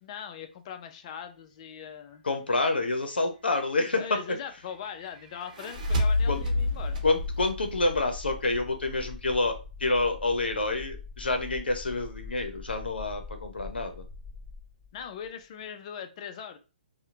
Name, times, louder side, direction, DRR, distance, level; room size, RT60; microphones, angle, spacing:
voice 1, 0.0-2.2 3.9-7.0 14.9-16.6, left 8 dB, 40° left, 7 dB, 0.4 m, -40 dB
voice 2, 2.2-4.2 6.3-6.4 7.0-14.0, left 2 dB, 85° left, 6 dB, 0.6 m, -28 dB
sound 1, 5.3-8.7, left 2 dB, 50° right, 0.9 m, -29 dB
sound 2, 5.7-15.3, left 4 dB, 5° left, 0.8 m, -43 dB
2.8 x 2.1 x 2.4 m, 0.32 s
hypercardioid pair, 140°, 5 cm